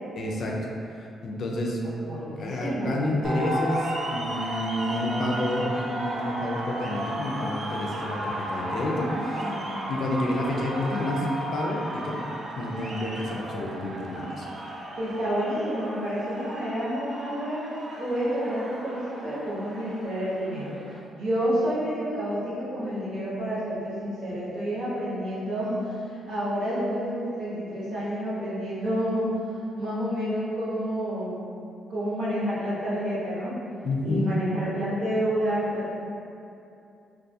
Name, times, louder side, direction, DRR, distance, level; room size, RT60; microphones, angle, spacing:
voice 1, 0.2-0.7 1.0-1.8 2.4-9.5 9.9-11.3 11.5-12.2 12.6-14.5 33.8-34.3, left 1 dB, 60° left, -1 dB, 0.4 m, -29 dB
voice 2, 1.8-3.0 9.0-9.9 15.0-17.6 18.0-20.7 21.1-25.9 26.3-29.3 29.8-31.4 31.9-33.5 34.0-35.9, equal, 80° right, -9 dB, 0.9 m, -29 dB
sound 1, 3.2-21.0, right 1 dB, 50° right, 0.4 m, -34 dB
2.3 x 2.3 x 2.6 m, 2.6 s
cardioid pair, 75°, 0 cm